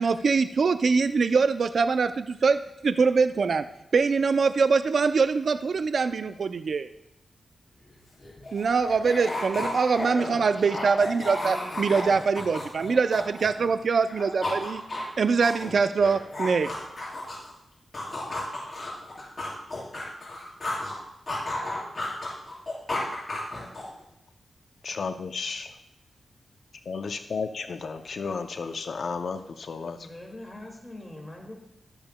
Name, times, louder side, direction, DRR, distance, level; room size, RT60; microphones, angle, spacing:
voice 1, 0.0-3.7 3.9-6.9 8.5-14.8 15.2-16.7, right 5 dB, 60° right, 11 dB, 0.4 m, -23 dB
sound 1, 7.9-8.0 8.2-13.7 14.0-17.5 17.9-21.0 21.3-24.0, left 1 dB, 30° left, 4.1 m, -33 dB
voice 2, 24.8-25.8 26.9-30.1, left 5 dB, 60° left, 8 dB, 0.5 m, -33 dB
voice 3, 30.0-31.6, left 1 dB, 15° left, 0 dB, 2.1 m, -42 dB
21.0 x 7.1 x 2.2 m, 0.87 s
wide cardioid pair, 120°, 0 cm